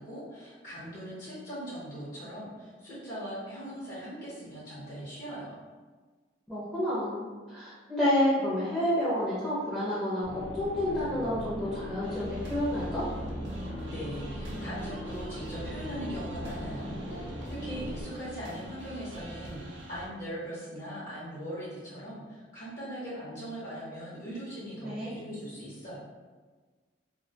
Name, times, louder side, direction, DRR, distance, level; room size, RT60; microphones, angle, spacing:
voice 1, 0.0-5.6 13.9-26.0, equal, 45° left, -9 dB, 0.6 m, -40 dB
voice 2, 6.5-13.1 24.8-25.1, left 1 dB, ahead, -10 dB, 0.5 m, -29 dB
sound 1, 10.2-18.0, equal, 85° left, 0.7 m, -39 dB
sound 2, 12.0-20.1, right 1 dB, 70° right, 0.5 m, -42 dB
2.3 x 2.1 x 2.7 m, 1.4 s
head